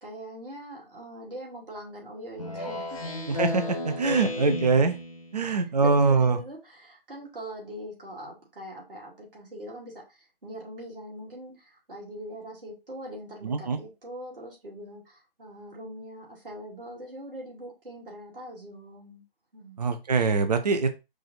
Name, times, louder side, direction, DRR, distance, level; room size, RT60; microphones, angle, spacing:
voice 1, 0.0-3.2 3.9-4.0 5.5-19.2 19.5-19.8, right 1 dB, 65° right, 2.9 m, -42 dB
Speech synthesizer, 2.4-5.4, left 2 dB, 35° left, 0.9 m, -33 dB
voice 2, 3.3-4.9 5.3-6.4 13.4-13.8 19.8-21.0, right 4 dB, 45° right, 0.7 m, -23 dB
5.0 x 2.6 x 4.0 m
figure-of-eight pair, 150°, 29 cm